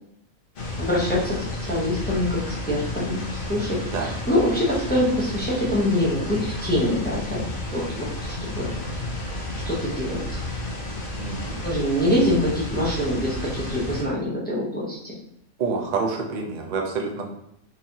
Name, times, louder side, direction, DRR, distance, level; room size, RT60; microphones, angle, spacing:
sound 1, 0.6-14.0, left 1 dB, 50° left, 0.8 m, -32 dB
voice 1, 0.8-7.4 7.7-8.7 9.7-10.4 11.6-15.1, left 1 dB, 10° left, -6 dB, 0.6 m, -25 dB
voice 2, 11.2-11.7 15.6-17.3, right 4 dB, 65° right, 1 dB, 0.4 m, -28 dB
4.0 x 2.9 x 2.8 m, 0.77 s
omnidirectional pair, 1.5 m